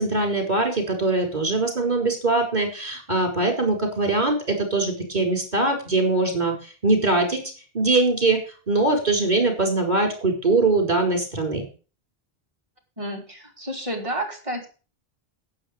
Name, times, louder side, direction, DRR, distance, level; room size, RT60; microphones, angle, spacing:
voice 1, 0.0-6.5 6.8-7.4 7.7-8.4 8.7-11.7, right 3 dB, 45° right, 3 dB, 5.1 m, -22 dB
voice 2, 13.0-14.7, right 1 dB, 30° right, 1 dB, 3.9 m, -30 dB
11.5 x 9.3 x 5.2 m, 0.35 s
omnidirectional pair, 1.0 m